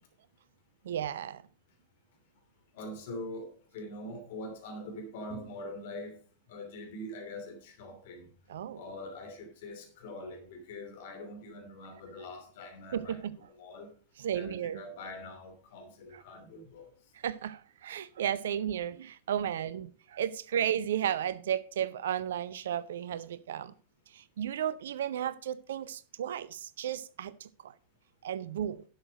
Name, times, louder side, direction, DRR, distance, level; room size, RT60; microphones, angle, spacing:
voice 1, 0.8-1.4 8.5-8.8 12.9-13.4 14.2-14.9 17.2-23.7 24.1-27.7 28.2-28.8, right 9 dB, 60° right, 0.6 m, -34 dB
voice 2, 2.7-6.2 6.5-8.3 8.7-13.9 14.3-16.9, left 1 dB, 55° left, 3.0 m, -43 dB
11.0 x 6.5 x 5.1 m
figure-of-eight pair, 90°, 0 cm